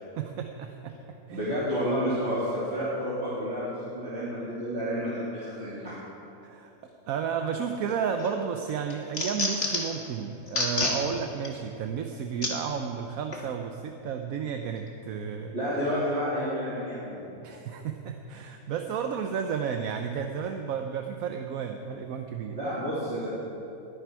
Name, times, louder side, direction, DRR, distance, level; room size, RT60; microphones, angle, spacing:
voice 1, 0.2-0.9 1.3-1.5 6.4-6.7 7.1-15.6 17.4-22.6, right 7 dB, 75° right, 5 dB, 1.1 m, -32 dB
voice 2, 1.3-6.0 15.5-17.2 22.5-23.3, equal, 45° right, -10 dB, 3.2 m, -30 dB
sound 1, 7.9-8.3 8.7-10.0 10.5-11.0 11.4-11.5 12.4-12.5 13.3-13.4, left 2 dB, 45° left, 2.0 m, -28 dB
21.0 x 10.5 x 4.7 m, 2.9 s
omnidirectional pair, 1.5 m